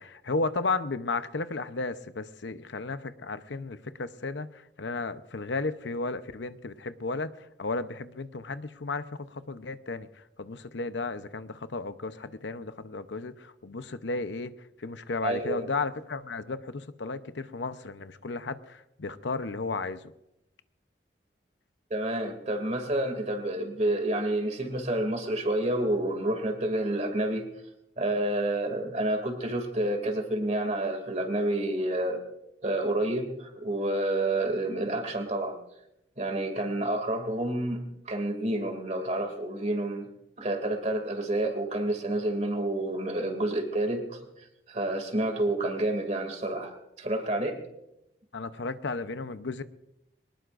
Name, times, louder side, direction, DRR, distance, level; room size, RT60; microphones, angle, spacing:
voice 1, 0.0-7.3 7.6-14.5 14.8-20.0 48.3-49.6, left 3 dB, 85° left, 11 dB, 0.8 m, -34 dB
voice 2, 15.2-15.7 21.9-27.5 28.0-32.2 32.6-35.6 36.2-40.1 40.4-47.6, right 1 dB, 40° right, 5 dB, 2.5 m, -29 dB
23.0 x 19.5 x 2.6 m, 0.85 s
head